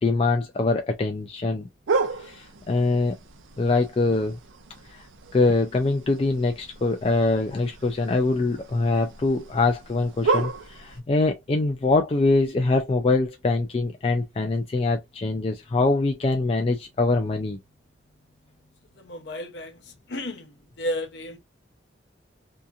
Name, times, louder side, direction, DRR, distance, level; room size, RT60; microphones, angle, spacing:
voice 1, 0.0-1.7 2.2-3.2 3.6-4.4 4.9-5.0 5.3-17.6, left 3 dB, 30° left, 0.3 m, -23 dB
sound 1, 1.9-11.0, right 4 dB, 85° right, 0.5 m, -33 dB
voice 2, 18.9-20.5 20.8-21.4, left 1 dB, 60° left, 0.7 m, -33 dB
2.8 x 2.4 x 2.3 m
head